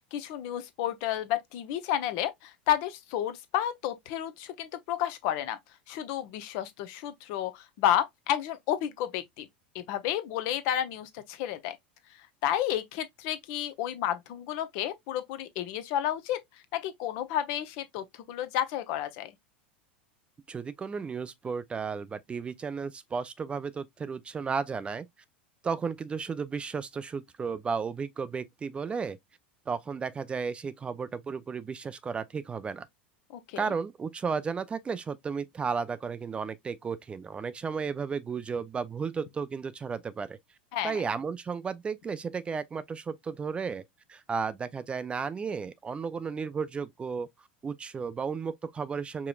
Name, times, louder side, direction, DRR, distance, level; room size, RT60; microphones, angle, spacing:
voice 1, 0.1-5.6 5.9-9.5 9.7-11.8 12.4-16.4 16.7-19.3 33.3-33.7 40.7-41.0, left 11 dB, 55° left, 0.7 m, -31 dB
voice 2, 20.5-25.1 25.6-29.2 29.7-32.9 33.6-40.4 40.8-43.8 44.1-47.3 47.6-49.3, right 5 dB, 20° right, 0.4 m, -33 dB
4.9 x 2.9 x 2.3 m
figure-of-eight pair, 85°, 6 cm